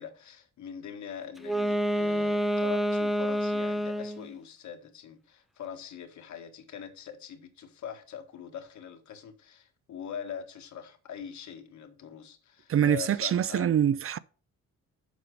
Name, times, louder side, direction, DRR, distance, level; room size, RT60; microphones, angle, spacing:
voice 1, 0.0-13.7, left 8 dB, 70° left, 1.7 m, -42 dB
Wind instrument woodwind instrument, 1.4-4.3, equal, ahead, 0.7 m, -28 dB
voice 2, 12.7-14.2, right 9 dB, 45° right, 0.6 m, -25 dB
7.2 x 5.1 x 6.4 m
cardioid pair, 90°, 30 cm